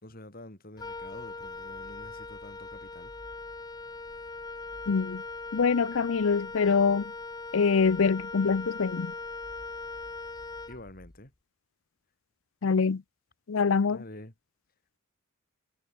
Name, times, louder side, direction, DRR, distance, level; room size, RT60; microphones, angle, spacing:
voice 1, 0.0-3.1 10.7-11.3 13.9-14.3, left 1 dB, 40° left, 4.9 m, -47 dB
Wind instrument woodwind instrument, 0.8-11.2, left 3 dB, 20° left, 0.7 m, -40 dB
voice 2, 4.9-5.2 5.5-7.1 7.5-9.1 12.6-13.0 13.5-14.0, left 5 dB, 65° left, 0.5 m, -24 dB
head